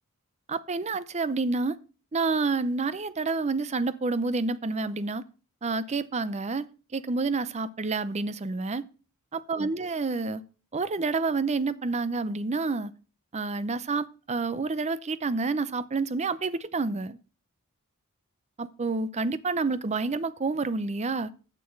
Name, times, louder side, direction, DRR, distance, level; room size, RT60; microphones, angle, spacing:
voice 1, 0.5-1.8 2.1-5.2 5.6-6.7 6.9-8.9 9.3-10.4 10.7-12.9 13.3-17.2 18.6-21.3, right 3 dB, 30° right, 0.5 m, -29 dB
7.0 x 6.8 x 7.3 m
head